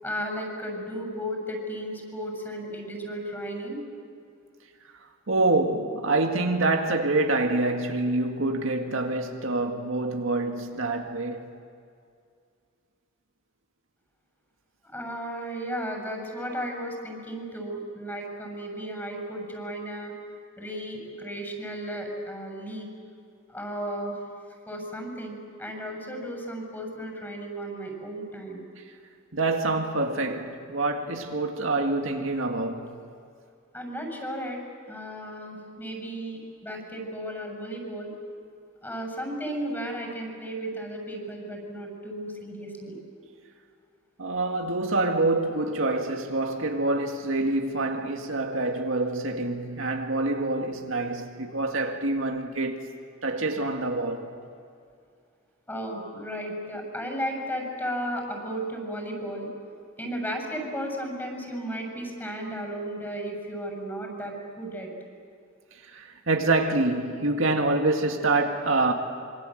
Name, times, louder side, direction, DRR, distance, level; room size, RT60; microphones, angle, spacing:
voice 1, 0.0-3.8 14.8-20.1 20.6-22.9 23.5-24.2 24.7-28.6 33.7-34.6 34.9-38.1 38.8-42.9 55.7-59.5 60.0-64.9, equal, 10° left, 7.2 m, -34 dB
voice 2, 5.3-11.5 29.3-32.9 44.2-52.8 53.2-54.3 65.8-68.9, right 2 dB, 75° right, 2.0 m, -26 dB
26.0 x 25.5 x 7.9 m
head